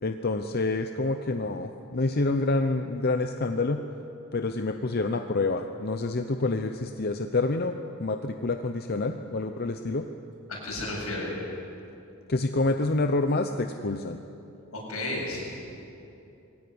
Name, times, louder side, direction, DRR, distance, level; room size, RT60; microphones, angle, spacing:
voice 1, 0.0-3.8 4.3-7.7 8.0-10.0 12.3-14.2, left 2 dB, 45° left, 7 dB, 0.7 m, -27 dB
voice 2, 10.5-11.3 14.7-15.4, left 2 dB, 80° left, -3 dB, 7.8 m, -32 dB
22.0 x 16.5 x 9.5 m, 2.8 s
head